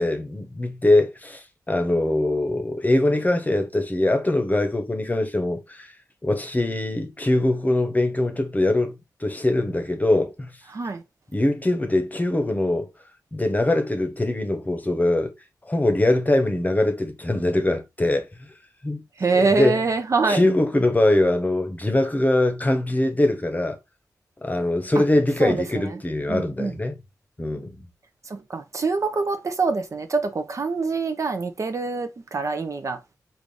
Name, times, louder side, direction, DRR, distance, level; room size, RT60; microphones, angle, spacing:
voice 1, 0.0-5.9 6.2-10.5 11.3-12.9 13.3-15.3 15.7-18.3 18.8-19.0 19.3-19.8 20.3-23.8 24.4-26.9 27.4-27.8, left 1 dB, 25° left, 0.9 m, -22 dB
voice 2, 10.7-11.0 19.2-20.4 25.0-25.1 25.4-26.0 26.3-26.8 28.2-33.0, right 4 dB, 50° right, 0.6 m, -25 dB
3.8 x 2.5 x 3.2 m
cardioid pair, 55°, 7 cm